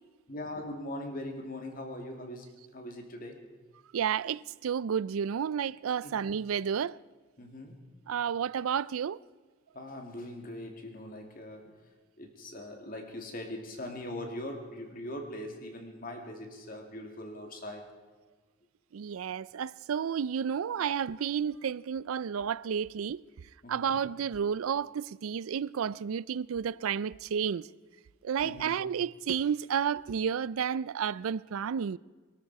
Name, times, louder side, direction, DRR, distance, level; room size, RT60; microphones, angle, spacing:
voice 1, 0.3-3.5 6.0-6.2 7.4-7.8 9.7-11.8 12.2-17.9 23.6-24.0 28.4-28.8, left 1 dB, 40° left, 2.4 m, -41 dB
voice 2, 3.9-7.0 8.1-9.2 18.9-23.2 23.7-27.7 28.2-32.0, right 7 dB, 85° right, 0.4 m, -31 dB
23.0 x 13.0 x 4.7 m
head